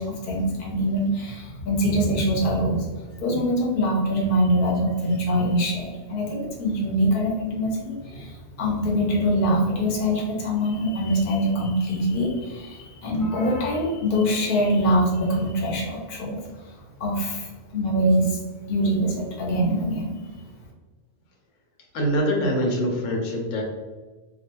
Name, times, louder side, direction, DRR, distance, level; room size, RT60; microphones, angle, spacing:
voice 1, 0.0-2.9 3.2-18.4 18.7-20.1, equal, 50° left, -2 dB, 0.8 m, -24 dB
voice 2, 21.9-23.6, equal, 80° left, 0 dB, 1.0 m, -24 dB
2.3 x 2.3 x 2.9 m, 1.3 s
omnidirectional pair, 1.3 m